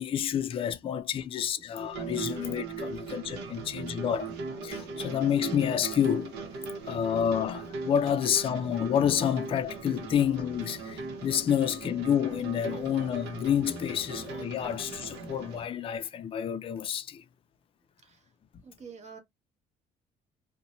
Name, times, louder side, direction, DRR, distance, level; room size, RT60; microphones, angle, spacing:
voice 1, 0.0-4.3 4.6-6.3 6.8-17.2, left 9 dB, 35° left, 0.4 m, -29 dB
sound 1, 1.8-15.7, right 4 dB, 85° right, 0.8 m, -39 dB
voice 2, 18.6-19.2, right 5 dB, 40° right, 0.8 m, -48 dB
2.5 x 2.1 x 2.9 m
cardioid pair, 110°, 17 cm